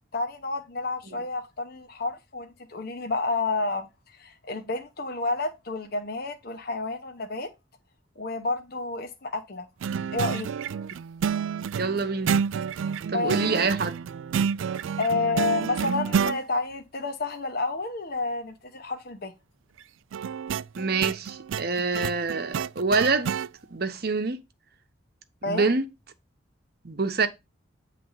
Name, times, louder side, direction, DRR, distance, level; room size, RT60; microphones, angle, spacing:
voice 1, 0.1-3.9 4.2-7.5 8.2-9.7 10.1-10.5 13.1-13.7 15.0-19.3 25.4-25.7, left 3 dB, 50° left, 0.8 m, -30 dB
sound 1, 9.8-16.4 20.1-23.5, right 7 dB, 75° right, 0.3 m, -29 dB
voice 2, 11.8-12.4 13.1-13.9 20.8-23.3 23.7-24.4 25.5-25.8 26.8-27.3, right 4 dB, 50° right, 0.9 m, -26 dB
9.1 x 3.3 x 5.5 m
head